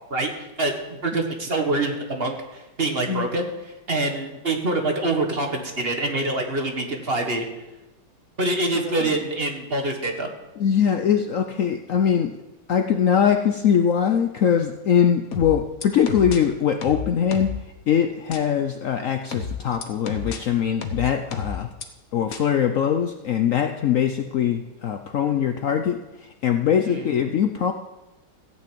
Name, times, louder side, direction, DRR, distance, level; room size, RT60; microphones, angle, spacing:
voice 1, 0.1-3.5 3.9-7.4 8.4-10.3 26.9-27.0, right 2 dB, 30° right, 3 dB, 1.5 m, -25 dB
voice 2, 8.7-9.1 10.6-12.4 12.7-17.6 17.9-21.7 22.1-27.7, left 8 dB, 90° left, 7 dB, 0.7 m, -22 dB
sound 1, 15.3-16.4 16.8-17.6 18.3-18.4 19.3-20.4 20.8-21.8 22.3-22.4, left 5 dB, 50° left, 1.4 m, -30 dB
15.0 x 6.3 x 8.5 m, 1.0 s
omnidirectional pair, 2.2 m